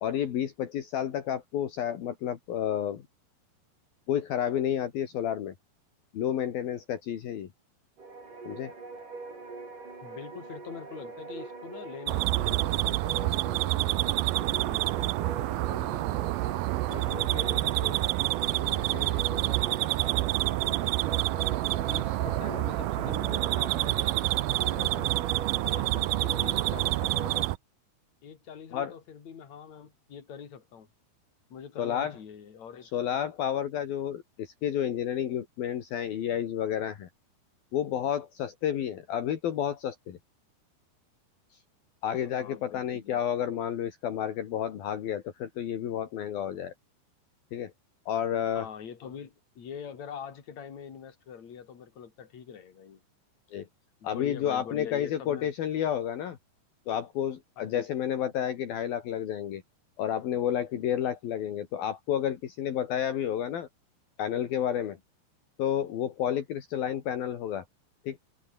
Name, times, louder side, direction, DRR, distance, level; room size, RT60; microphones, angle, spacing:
voice 1, 0.0-3.0 4.1-5.5 6.1-7.5 8.5-8.7 28.7-28.9 31.8-32.2 32.9-37.1 37.7-40.2 42.0-46.7 47.5-47.7 48.1-48.7 53.5-53.7 54.0-56.4 56.9-59.6 60.0-63.7 64.2-65.0 65.6-67.6 68.1-68.2, left 10 dB, 65° left, 3.7 m, -30 dB
sound 1, 8.0-27.4, right 3 dB, 50° right, 9.7 m, -42 dB
voice 2, 10.0-16.3 16.9-18.1 18.5-21.0 21.9-24.4 24.6-25.1 25.6-27.5 28.2-30.9 31.5-32.9 42.4-43.2 48.5-53.0 54.0-55.5 57.6-57.9, left 7 dB, 45° left, 4.3 m, -44 dB
sound 2, 12.1-27.6, right 20 dB, 90° right, 2.1 m, -28 dB
omnidirectional pair, 4.8 m